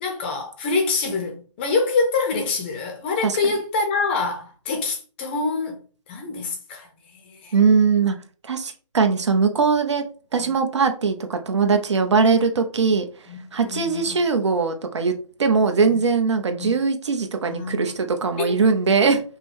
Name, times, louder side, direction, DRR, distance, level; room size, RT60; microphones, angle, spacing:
voice 1, 0.0-5.8 6.1-7.5 10.4-10.5 13.3-14.2 15.8-16.0 16.6-16.7 17.4-17.9 18.4-18.5, left 4 dB, 20° left, 0.6 m, -26 dB
voice 2, 7.5-8.2 8.4-10.0 10.3-13.1 13.5-15.1 15.4-19.2, right 5 dB, 60° right, 0.9 m, -20 dB
5.2 x 2.2 x 4.6 m
figure-of-eight pair, 155°, 17 cm